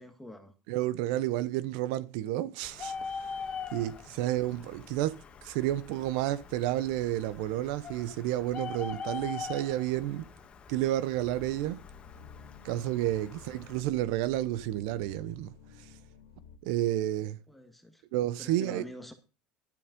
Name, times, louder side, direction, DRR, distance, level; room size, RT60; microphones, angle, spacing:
voice 1, 0.0-0.5 4.1-4.3 17.5-18.0 18.4-19.1, left 1 dB, 5° left, 1.6 m, -47 dB
voice 2, 0.7-2.9 3.7-10.3 10.7-11.8 12.6-15.5 15.8-15.9 16.6-17.4 18.1-18.9, right 14 dB, 80° right, 0.9 m, -31 dB
Bird, 2.6-13.8, left 5 dB, 30° left, 1.6 m, -43 dB
sound 1, 11.2-16.6, left 6 dB, 90° left, 2.1 m, -52 dB
11.5 x 7.0 x 5.3 m
cardioid pair, 135°, 4 cm